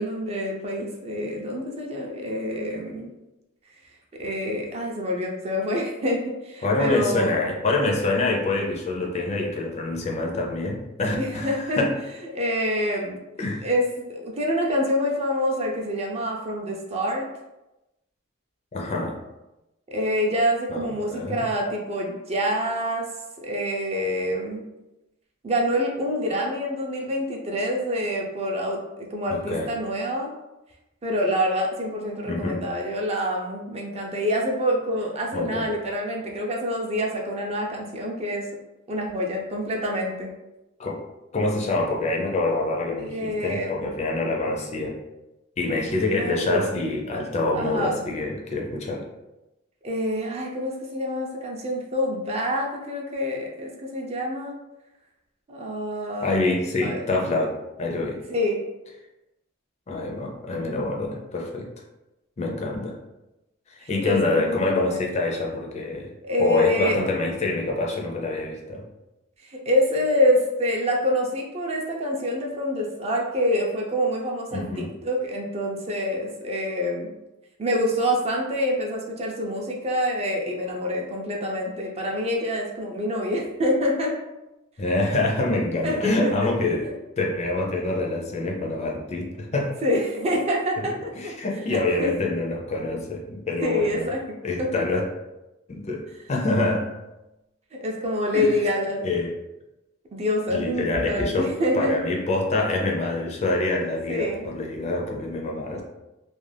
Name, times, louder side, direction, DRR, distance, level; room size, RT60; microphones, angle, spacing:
voice 1, 0.0-3.1 4.2-7.5 11.2-11.8 12.3-13.2 13.6-17.3 19.9-23.1 23.4-24.6 25.4-30.3 31.0-38.5 38.9-40.3 43.0-43.9 46.1-46.7 47.5-48.0 49.8-54.5 55.5-56.5 56.8-57.0 58.3-58.6 63.8-65.1 66.2-67.0 69.4-77.1 77.6-84.1 85.8-86.3 86.8-86.9 89.8-91.3 91.7-92.1 93.6-94.7 97.7-99.2 100.1-102.0 104.1-104.5, equal, 30° right, 0 dB, 0.4 m, -26 dB
voice 2, 6.6-12.0 13.4-13.7 18.7-19.2 20.7-21.4 29.3-29.7 32.3-32.6 35.3-35.7 40.8-41.0 41.3-45.0 45.6-49.0 56.2-58.2 59.9-61.7 62.4-63.0 63.7-66.1 66.4-68.8 74.5-74.9 84.8-86.9 87.2-89.8 91.1-94.1 94.4-95.1 95.7-96.0 96.3-96.9 98.3-98.6 99.0-99.3 100.5-105.8, left 2 dB, 35° left, 0 dB, 0.4 m, -26 dB
2.4 x 2.2 x 3.2 m, 0.97 s
head